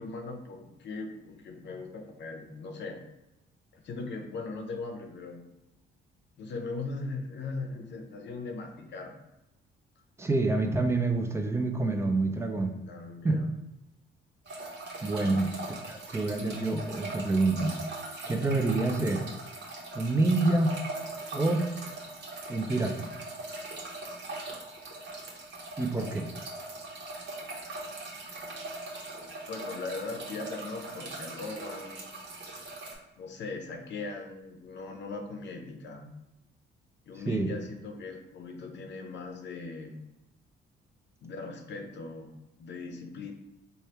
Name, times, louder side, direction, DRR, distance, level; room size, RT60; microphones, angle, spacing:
voice 1, 0.0-3.0 3.7-5.4 6.4-9.2 12.9-13.5 15.2-15.4 28.6-28.8 29.5-32.0 32.5-32.7 33.2-36.1 37.1-40.0 41.2-42.3 42.6-43.3, left 3 dB, 65° left, 4 dB, 0.7 m, -39 dB
voice 2, 10.2-12.7 13.2-13.4 15.0-15.5 15.9-17.8 18.3-19.2 19.9-20.8 21.3-21.6 22.5-23.1 25.8-26.3 37.2-37.5, right 2 dB, 15° right, 5 dB, 0.5 m, -27 dB
sound 1, 14.5-32.9, right 2 dB, 60° right, 1.0 m, -41 dB
3.4 x 2.2 x 4.2 m, 0.93 s
cardioid pair, 90°, 20 cm